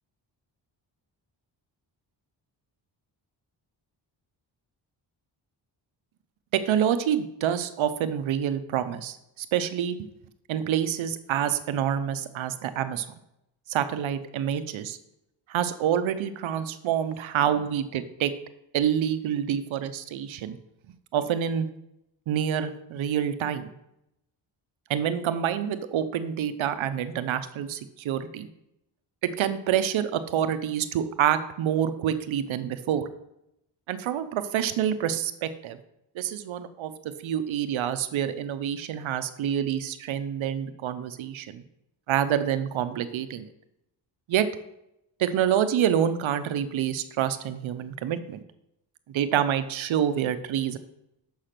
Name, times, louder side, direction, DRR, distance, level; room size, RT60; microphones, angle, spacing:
voice 1, 6.5-10.0 10.5-13.1 13.7-15.0 15.5-18.3 18.7-20.6 21.1-21.7 22.3-23.7 24.9-28.5 29.2-33.1 33.9-35.8 36.2-36.9 37.2-41.6 42.1-43.4 44.3-44.5 45.2-48.4 49.1-50.8, right 9 dB, 90° right, 11 dB, 0.7 m, -27 dB
6.6 x 5.6 x 5.8 m, 0.84 s
cardioid pair, 90°, 46 cm